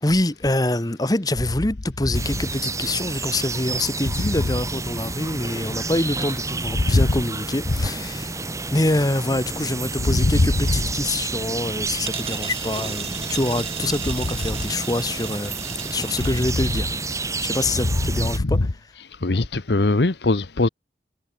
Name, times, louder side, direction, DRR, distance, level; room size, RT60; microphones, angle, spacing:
voice 1, 0.0-8.4 8.7-16.9 17.4-18.7, left 1 dB, 20° left, 1.1 m, -25 dB
sound 1, 2.1-18.4, right 3 dB, 20° right, 2.5 m, -30 dB
voice 2, 4.1-4.5 6.7-7.2 7.7-7.9 10.0-10.8 16.2-16.8 17.8-18.7 19.2-20.7, left 2 dB, 75° left, 1.0 m, -21 dB
sound 2, 9.9-17.4, right 7 dB, 35° right, 1.1 m, -36 dB
head